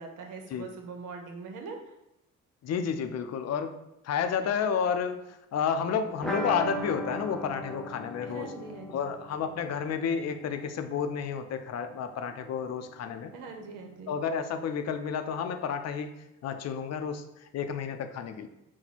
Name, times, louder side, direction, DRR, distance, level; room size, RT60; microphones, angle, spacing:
voice 1, 0.0-1.9 8.3-9.0 13.3-14.1, right 4 dB, 85° right, 3 dB, 0.8 m, -42 dB
voice 2, 2.6-3.8 4.0-8.5 8.9-13.3 14.1-16.1 16.4-18.5, left 7 dB, 60° left, 8 dB, 0.5 m, -31 dB
sound 1, 6.2-11.8 12.1-12.2 12.5-12.6, equal, ahead, 0.6 m, -39 dB
4.4 x 2.2 x 4.1 m, 0.89 s
cardioid pair, 90°, 30 cm